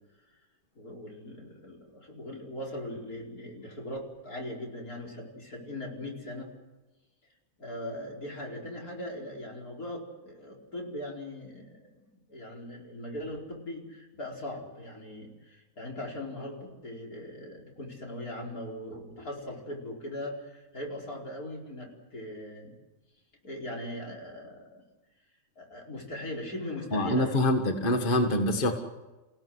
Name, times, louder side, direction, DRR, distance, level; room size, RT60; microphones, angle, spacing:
voice 1, 0.8-6.5 7.6-11.9 12.3-22.8 23.4-24.8 25.6-27.5, left 1 dB, 85° left, -1 dB, 5.4 m, -40 dB
voice 2, 26.9-28.7, left 1 dB, 35° left, 5 dB, 1.9 m, -25 dB
30.0 x 17.0 x 8.0 m, 1.1 s
omnidirectional pair, 1.5 m